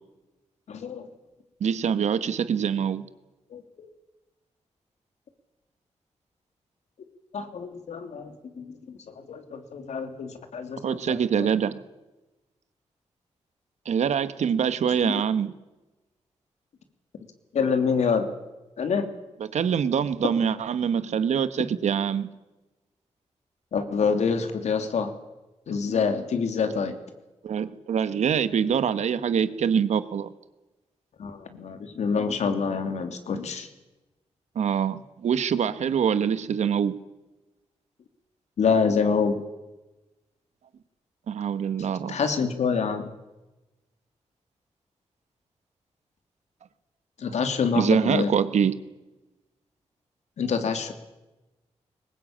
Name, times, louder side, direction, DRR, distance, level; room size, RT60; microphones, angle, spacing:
voice 1, 0.7-1.1 3.5-3.9 7.3-9.0 9.3-11.5 14.8-15.1 17.5-18.3 18.8-19.1 23.7-25.1 25.7-27.0 31.2-33.7 38.6-39.4 42.1-43.1 47.2-48.3 50.4-50.9, left 5 dB, 85° left, 7 dB, 2.9 m, -26 dB
voice 2, 1.6-3.1 10.8-11.8 13.8-15.5 19.4-22.3 27.4-30.3 34.5-37.0 41.3-42.2 47.7-48.8, right 7 dB, 85° right, 13 dB, 1.4 m, -24 dB
22.0 x 20.0 x 8.8 m, 1.1 s
cardioid pair, 65°, 11 cm